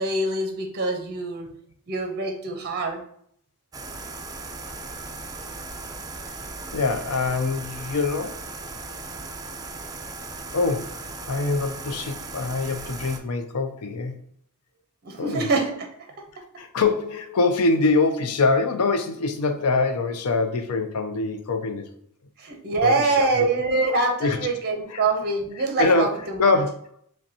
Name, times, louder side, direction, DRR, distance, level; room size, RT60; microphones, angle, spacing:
voice 1, 0.0-1.5 1.9-3.0 15.0-15.9 22.4-26.6, right 3 dB, 45° right, 3 dB, 0.7 m, -24 dB
sound 1, 3.7-13.2, right 3 dB, 15° right, 0.3 m, -37 dB
voice 2, 6.7-8.4 10.5-14.1 15.2-15.5 16.6-21.9 22.8-23.3 24.2-24.4 24.9-25.0 25.8-26.1 26.4-26.7, left 3 dB, 90° left, 7 dB, 0.5 m, -24 dB
5.1 x 2.2 x 2.7 m, 0.66 s
head